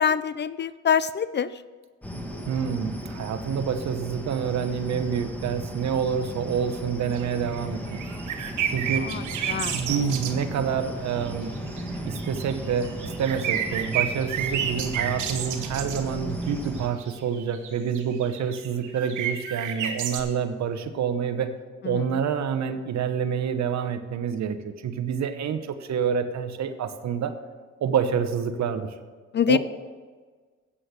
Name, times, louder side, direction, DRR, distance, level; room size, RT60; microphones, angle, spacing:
voice 1, 0.0-1.5 9.0-9.8 21.8-22.2 29.3-29.6, left 8 dB, 35° left, 16 dB, 0.4 m, -25 dB
sound 1, 2.0-16.9, equal, 5° left, 1.5 m, -35 dB
voice 2, 2.5-8.0 8.7-9.1 9.7-11.6 12.1-21.5 21.8-27.3 27.8-28.9 29.5-29.6, right 7 dB, 65° right, 8 dB, 1.0 m, -27 dB
sound 2, 7.1-7.6 7.9-10.3 11.2-11.3 11.5-16.0 16.7-20.2, right 9 dB, 80° right, 1.2 m, -30 dB
8.5 x 7.8 x 6.6 m, 1.4 s
cardioid pair, 90°, 30 cm